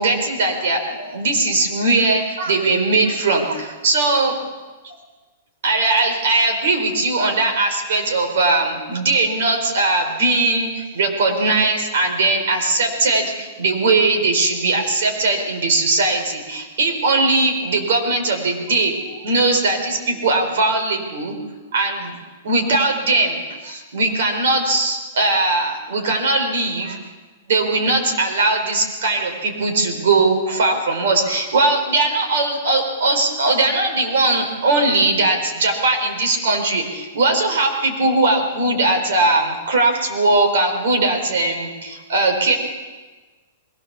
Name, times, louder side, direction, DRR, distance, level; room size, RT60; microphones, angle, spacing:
voice 1, 0.0-4.4 4.8-4.9 5.6-21.3 21.7-22.1 22.4-27.0 27.5-42.6, right 2 dB, 60° right, 4 dB, 4.5 m, -19 dB
21.0 x 17.5 x 7.0 m, 1.3 s
supercardioid pair, 180°, 0 cm